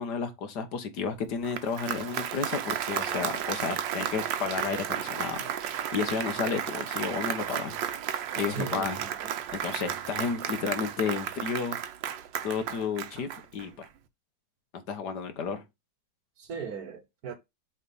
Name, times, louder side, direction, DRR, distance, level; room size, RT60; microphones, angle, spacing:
voice 1, 0.0-7.8 8.4-9.0 9.5-11.8 12.4-13.9 14.9-15.6, left 6 dB, 65° left, 1.7 m, -32 dB
Applause, 1.3-13.9, right 10 dB, 85° right, 1.5 m, -33 dB
voice 2, 8.5-9.3 16.4-17.3, right 6 dB, 60° right, 1.4 m, -38 dB
7.3 x 3.4 x 5.4 m
omnidirectional pair, 2.0 m